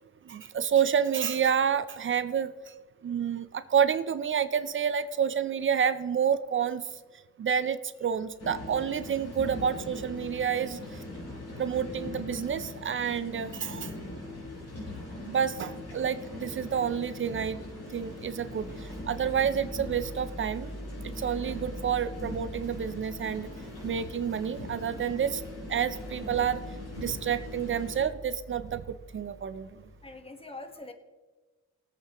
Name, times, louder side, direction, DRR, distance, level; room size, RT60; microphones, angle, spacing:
voice 1, 0.2-2.7 3.0-6.9 7.4-11.0 11.6-13.9 15.3-17.6 17.9-20.7 21.0-23.5 23.8-25.4 25.7-26.6 27.0-29.8, right 8 dB, 40° right, 12 dB, 0.6 m, -29 dB
sound 1, 8.4-28.1, left 2 dB, 50° left, 4.5 m, -41 dB
sound 2, 18.6-30.2, right 1 dB, 10° right, 1.0 m, -45 dB
voice 2, 30.0-30.9, left 2 dB, 20° left, 6 dB, 1.4 m, -44 dB
20.0 x 8.2 x 3.0 m, 1.3 s
cardioid pair, 90°, 30 cm